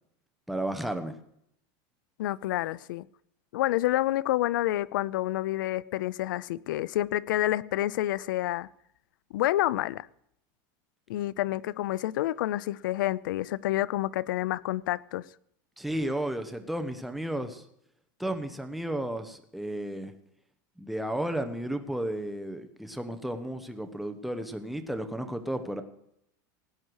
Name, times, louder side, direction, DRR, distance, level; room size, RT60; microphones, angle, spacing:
voice 1, 0.5-1.1 15.8-17.6 18.2-20.1 20.8-25.8, right 1 dB, ahead, 1.0 m, -33 dB
voice 2, 2.2-3.1 3.5-8.7 9.3-10.1 11.1-15.2, left 15 dB, 85° left, 0.5 m, -28 dB
17.5 x 9.5 x 4.7 m
supercardioid pair, 150°, 10 cm